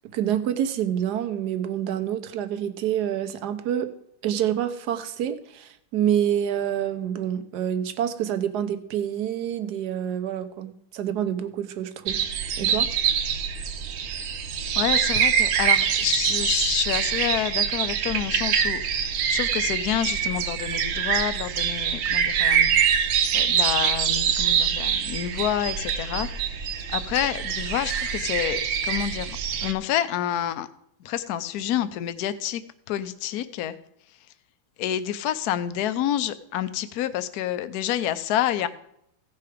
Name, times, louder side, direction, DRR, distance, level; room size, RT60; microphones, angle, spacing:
voice 1, 0.1-3.9 4.2-12.2 12.6-12.9, right 10 dB, 60° right, 9 dB, 1.2 m, -27 dB
sound 1, 12.1-29.7, right 8 dB, 85° right, 1.7 m, -24 dB
voice 2, 14.8-22.7 23.3-26.3 26.9-30.7 31.0-32.6 32.9-33.7 34.8-38.7, left 11 dB, 65° left, 12 dB, 0.9 m, -28 dB
16.0 x 5.8 x 5.0 m, 0.75 s
omnidirectional pair, 2.4 m